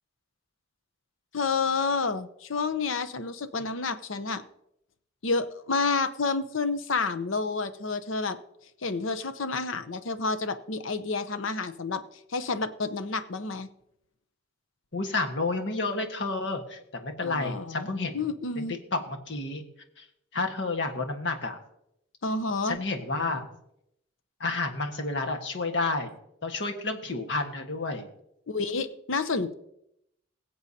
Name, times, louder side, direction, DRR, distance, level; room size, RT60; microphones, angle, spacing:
voice 1, 1.3-4.4 5.2-8.4 8.8-12.0 12.3-13.7 17.2-17.9 18.1-18.7 22.2-22.8 28.5-29.5, left 4 dB, 80° left, 12 dB, 0.7 m, -29 dB
voice 2, 14.9-18.2 18.6-19.6 20.0-20.1 20.3-21.6 22.6-23.5 24.4-26.1 26.4-28.1, left 3 dB, 65° left, 4 dB, 1.5 m, -30 dB
21.5 x 7.8 x 2.8 m, 0.78 s
head